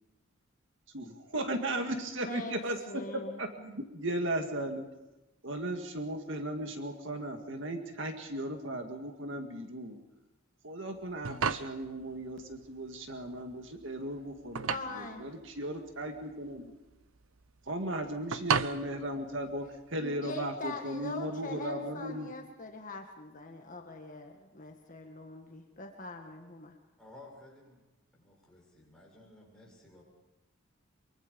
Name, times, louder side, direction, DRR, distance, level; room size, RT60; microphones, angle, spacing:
voice 1, 0.9-4.9 5.4-10.0 10.6-16.7 17.7-22.3, right 1 dB, 60° right, 5 dB, 2.1 m, -36 dB
voice 2, 2.2-2.6 2.9-3.4 14.7-15.3 20.0-26.8, left 2 dB, 40° left, 3 dB, 1.8 m, -42 dB
sound 1, 11.0-20.0, right 6 dB, 85° right, 0.8 m, -37 dB
voice 3, 27.0-27.8 28.1-30.0, left 2 dB, 5° left, -4 dB, 7.2 m, -55 dB
24.0 x 24.0 x 5.4 m, 1.0 s
head